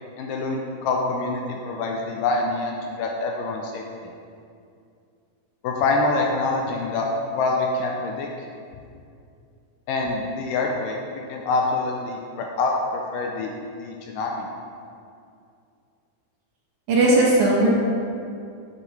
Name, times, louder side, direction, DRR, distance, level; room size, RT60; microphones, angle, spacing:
voice 1, 0.2-3.8 5.6-8.3 9.9-13.5 13.8-14.5, left 3 dB, 85° left, 0 dB, 2.0 m, -25 dB
voice 2, 16.9-17.7, right 2 dB, 65° right, -5 dB, 2.2 m, -17 dB
8.4 x 8.4 x 3.2 m, 2.4 s
omnidirectional pair, 4.3 m